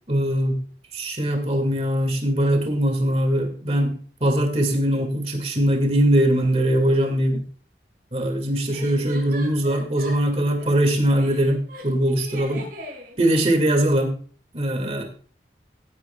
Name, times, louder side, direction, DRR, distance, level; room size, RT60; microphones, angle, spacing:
voice 1, 0.1-0.6 0.9-7.4 8.1-12.6 13.2-14.1 14.5-15.0, right 1 dB, 35° right, 5 dB, 2.0 m, -21 dB
sound 1, 6.3-6.4 8.7-10.9 11.2-13.2, left 1 dB, 55° right, 5.6 m, -39 dB
16.5 x 9.7 x 2.3 m, 0.41 s
head